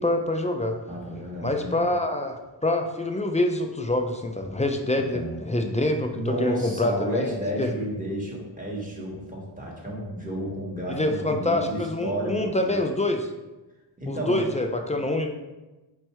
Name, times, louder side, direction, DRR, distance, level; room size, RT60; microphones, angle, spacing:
voice 1, 0.0-0.8 1.4-2.4 2.6-7.3 7.6-7.7 10.9-13.3 14.1-15.3, left 1 dB, 15° left, 4 dB, 0.3 m, -26 dB
voice 2, 0.9-2.0 4.9-5.4 6.1-12.8 14.0-14.4, right 1 dB, 15° right, -4 dB, 1.4 m, -32 dB
4.5 x 2.6 x 4.3 m, 1.1 s
cardioid pair, 65°, 47 cm